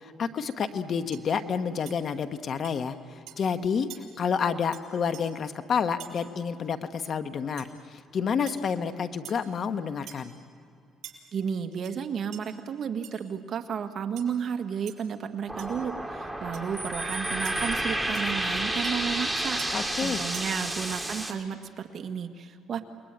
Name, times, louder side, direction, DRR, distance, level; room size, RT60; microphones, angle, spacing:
voice 1, 0.0-3.9 4.2-10.3 19.7-20.2, left 6 dB, 45° left, 9 dB, 1.2 m, -29 dB
sound 1, 0.6-0.7 1.1-1.3 1.9-2.0 2.6-2.8 3.3-3.4 3.9-4.0 4.7-4.8 5.1-5.2 6.0-6.1 7.6-7.7 8.5-8.6 9.2-9.5 10.1-10.3 11.0-11.1 11.7-11.9 12.3-12.4 13.0-13.1 14.2-14.3 14.9-15.0 15.6-15.8 16.5-16.6 17.4-17.6 18.1-18.3 18.8-18.9 19.6-19.7 20.3-20.5, right 12 dB, 65° right, 6.0 m, -44 dB
voice 2, 11.3-22.8, right 7 dB, 45° right, 6 dB, 1.7 m, -33 dB
sound 2, 15.5-21.3, right 1 dB, 5° right, 2.3 m, -30 dB
28.5 x 21.5 x 9.2 m, 2.4 s
cardioid pair, 120°, 0 cm